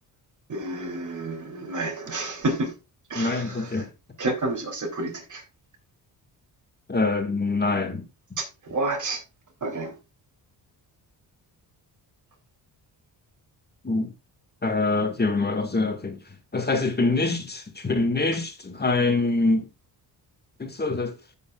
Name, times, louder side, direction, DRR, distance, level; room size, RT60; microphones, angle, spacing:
voice 1, 0.5-2.7 3.1-3.4 4.2-5.4 8.4-9.2 9.6-9.9, right 2 dB, 45° right, 3.2 m, -29 dB
voice 2, 3.2-3.9 6.9-8.1 13.8-14.1 14.6-16.2 16.5-19.7 20.6-21.1, left 3 dB, 25° left, 1.9 m, -24 dB
14.5 x 5.4 x 2.4 m
cardioid pair, 85°, 42 cm